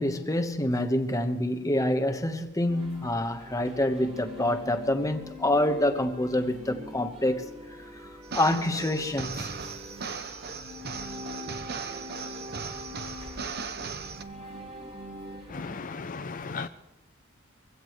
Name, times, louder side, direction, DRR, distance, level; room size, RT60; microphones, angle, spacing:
voice 1, 0.0-7.5 7.8-9.5, left 1 dB, 15° left, 1.2 m, -27 dB
sound 1, 2.7-15.7, left 1 dB, 30° right, 3.3 m, -43 dB
sound 2, 8.2-14.2, right 5 dB, 50° right, 1.0 m, -38 dB
voice 2, 15.5-16.7, left 4 dB, 40° left, 0.5 m, -36 dB
24.0 x 16.5 x 3.2 m
head